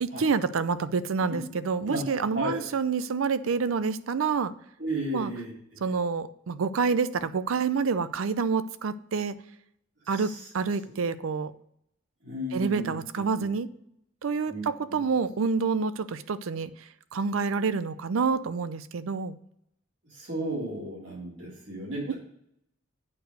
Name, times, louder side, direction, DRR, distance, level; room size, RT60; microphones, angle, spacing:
voice 1, 0.0-4.5 5.1-5.3 5.8-9.3 10.1-11.5 12.5-13.7 14.2-16.7 17.1-19.4 22.1-22.2, right 5 dB, 80° right, 15 dB, 0.5 m, -28 dB
voice 2, 4.8-5.9 10.1-10.4 10.8-10.9 12.2-12.9 13.4-13.5 14.5-14.6 14.9-15.0 20.1-22.1, right 1 dB, 60° right, -5 dB, 3.4 m, -34 dB
8.6 x 4.7 x 6.4 m, 0.75 s
head